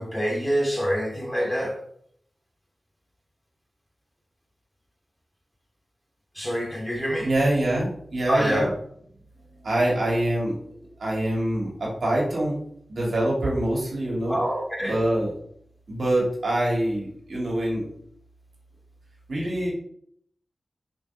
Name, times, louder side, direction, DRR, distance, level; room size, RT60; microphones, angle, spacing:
voice 1, 0.0-1.8 6.3-7.3 8.3-8.7 14.3-15.0, equal, ahead, -1 dB, 2.4 m, -26 dB
voice 2, 7.2-8.7 9.6-10.6 11.0-14.4 14.8-15.3 15.9-17.8 19.3-19.7, right 1 dB, 75° right, -4 dB, 2.9 m, -25 dB
6.0 x 5.4 x 3.9 m, 0.65 s
wide cardioid pair, 70°, 0 cm